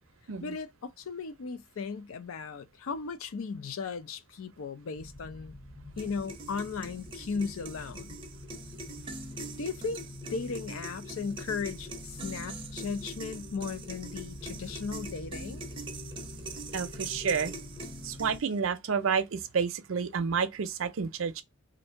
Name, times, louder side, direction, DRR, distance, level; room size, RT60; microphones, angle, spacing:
voice 1, 0.4-5.5 6.0-8.2 9.6-15.6, left 5 dB, 75° left, 0.5 m, -36 dB
sound 1, 4.9-18.4, left 1 dB, 20° left, 0.8 m, -46 dB
sound 2, 6.0-18.6, right 2 dB, 25° right, 0.5 m, -43 dB
voice 2, 16.7-17.5 18.0-21.4, right 6 dB, 70° right, 0.5 m, -30 dB
2.7 x 2.6 x 4.3 m
head